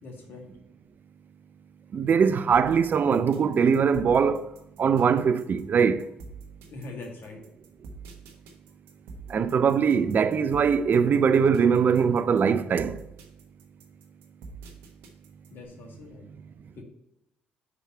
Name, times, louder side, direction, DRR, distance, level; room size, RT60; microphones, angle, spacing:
voice 1, 0.0-0.4 6.7-7.4 15.5-16.2 16.7-16.8, left 3 dB, 60° left, 1.8 m, -42 dB
voice 2, 1.9-4.5 4.8-6.1 9.3-13.0, right 6 dB, 50° right, 0.5 m, -22 dB
sound 1, 2.5-15.7, right 4 dB, 75° right, 1.1 m, -46 dB
5.1 x 4.7 x 5.6 m
hypercardioid pair, 55°, 4 cm